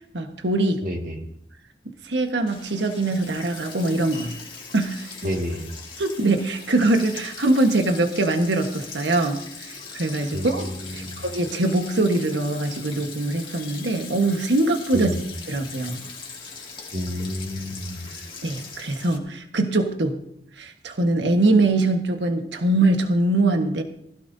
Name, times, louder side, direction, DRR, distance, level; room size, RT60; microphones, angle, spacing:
voice 1, 0.1-0.8 2.0-4.4 4.7-5.1 6.0-15.1 15.5-16.0 18.4-20.2 20.6-23.8, right 2 dB, 80° right, 5 dB, 1.4 m, -23 dB
voice 2, 0.8-1.2 5.2-5.6 10.3-11.2 14.9-15.2 16.9-18.1, equal, 50° right, 2 dB, 2.2 m, -29 dB
Sink (filling or washing), 2.5-19.2, left 5 dB, 30° left, 2.3 m, -40 dB
20.0 x 16.0 x 2.8 m, 0.72 s
head